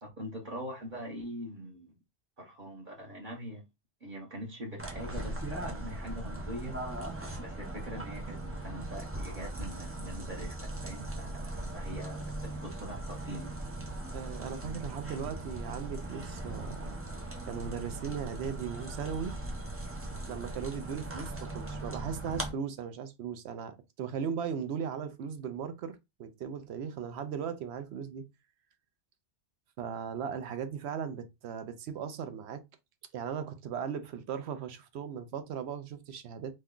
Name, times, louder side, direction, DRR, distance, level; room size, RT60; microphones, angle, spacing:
voice 1, 0.0-2.0 2.4-3.6 4.0-6.8 7.4-11.4 11.7-13.5, equal, 45° right, 1.0 m, -43 dB
sound 1, 4.8-22.5, right 1 dB, 20° right, 0.4 m, -39 dB
voice 2, 14.1-17.0 17.5-19.4 20.3-28.3 29.8-32.6 33.1-36.5, right 7 dB, 70° right, 0.9 m, -38 dB
3.1 x 2.2 x 3.6 m
omnidirectional pair, 1.2 m